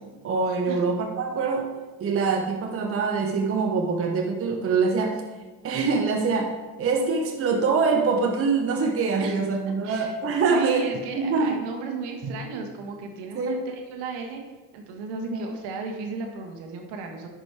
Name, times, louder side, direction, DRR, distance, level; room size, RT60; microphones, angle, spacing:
voice 1, 0.2-1.7 2.0-5.2 5.6-10.8 11.2-11.6 12.2-12.3 13.3-13.6 15.3-15.5, right 4 dB, 30° right, 2 dB, 1.0 m, -24 dB
voice 2, 9.8-10.2 10.5-14.4 14.7-17.3, right 4 dB, 55° right, 3 dB, 1.5 m, -35 dB
10.5 x 5.3 x 3.3 m, 1.3 s
figure-of-eight pair, 65°, 49 cm